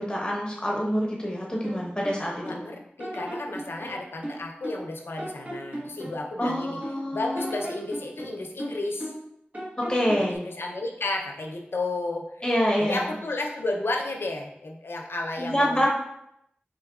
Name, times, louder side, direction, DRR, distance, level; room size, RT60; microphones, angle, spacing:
voice 1, 0.0-2.6 6.4-7.5 9.9-10.4 12.4-13.1 15.4-15.9, equal, 25° left, -3 dB, 0.8 m, -26 dB
sound 1, 1.6-2.6 3.0-4.9 5.2-7.0 7.4-9.3 9.5-10.4, equal, 40° right, 1.1 m, -37 dB
voice 2, 2.4-6.8 7.1-9.1 10.2-12.4 12.8-15.9, left 2 dB, 85° left, 1 dB, 0.6 m, -32 dB
4.4 x 3.7 x 2.3 m, 0.78 s
wide cardioid pair, 50°, 4 cm